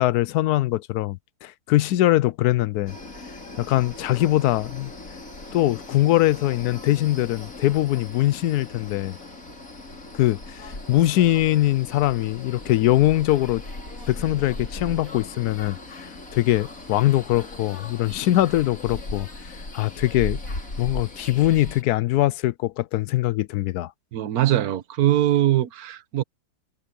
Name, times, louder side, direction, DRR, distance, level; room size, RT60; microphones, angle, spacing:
voice 1, 0.0-2.9 3.6-4.9 5.5-9.2 10.1-13.6 14.1-20.4 20.8-23.9, left 15 dB, 75° left, 1.1 m, -22 dB
sound 1, 2.9-21.8, left 2 dB, 55° left, 5.0 m, -38 dB
voice 2, 24.1-26.2, right 13 dB, 65° right, 1.4 m, -21 dB
omnidirectional pair, 1.7 m